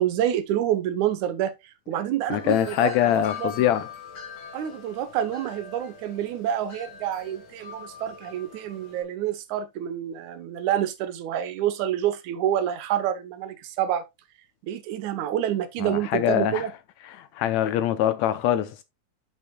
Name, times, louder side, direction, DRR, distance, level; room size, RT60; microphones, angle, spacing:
voice 1, 0.0-3.7 4.5-14.0 14.6-16.7, right 11 dB, 70° right, 2.2 m, -28 dB
voice 2, 2.3-3.9 15.8-16.6 17.2-18.8, left 11 dB, 80° left, 1.6 m, -23 dB
Wind chime, 2.3-9.0, left 5 dB, 40° left, 1.9 m, -42 dB
13.5 x 5.6 x 2.2 m
omnidirectional pair, 3.8 m